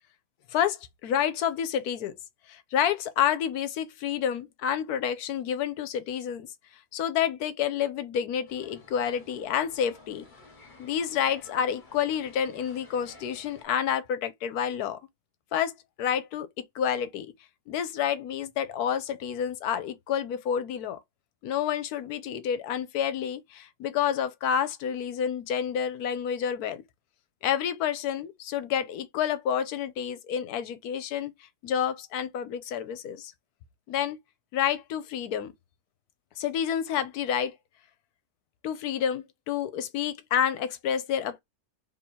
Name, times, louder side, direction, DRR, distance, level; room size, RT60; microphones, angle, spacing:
voice 1, 0.5-2.1 2.5-6.5 6.9-10.2 10.8-15.0 15.5-17.3 17.7-21.0 21.4-26.8 27.4-31.3 31.6-33.3 33.9-34.2 34.5-35.5 36.4-37.6 38.6-41.4, left 9 dB, 75° left, 1.1 m, -29 dB
sound 1, 8.5-13.6, left 3 dB, 35° left, 1.1 m, -53 dB
3.2 x 2.7 x 4.4 m
omnidirectional pair, 1.7 m